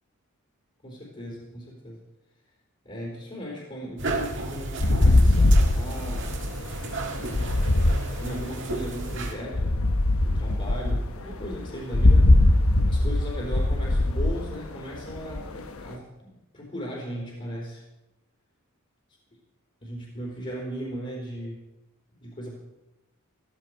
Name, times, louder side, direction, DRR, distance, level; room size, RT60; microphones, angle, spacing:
voice 1, 0.8-2.0 2.9-6.3 7.1-7.5 8.2-9.8 10.2-12.6 12.8-17.8 19.8-21.6 22.2-22.5, equal, 35° left, -3 dB, 3.8 m, -37 dB
sound 1, 4.0-9.3, right 2 dB, 55° right, 1.9 m, -33 dB
sound 2, 4.8-8.8 9.5-15.9, left 1 dB, 65° left, 1.1 m, -21 dB
16.0 x 14.5 x 4.7 m, 0.98 s
head